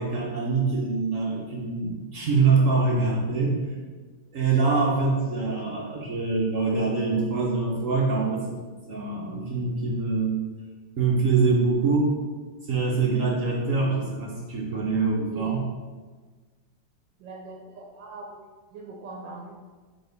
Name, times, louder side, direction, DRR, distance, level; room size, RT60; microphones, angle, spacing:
voice 1, 0.0-3.6 4.3-8.5 8.9-10.4 11.0-12.1 12.7-15.6, right 4 dB, 55° right, -3 dB, 1.0 m, -24 dB
voice 2, 17.2-19.5, right 3 dB, 80° right, -1 dB, 1.4 m, -41 dB
4.7 x 4.2 x 5.2 m, 1.4 s
omnidirectional pair, 2.0 m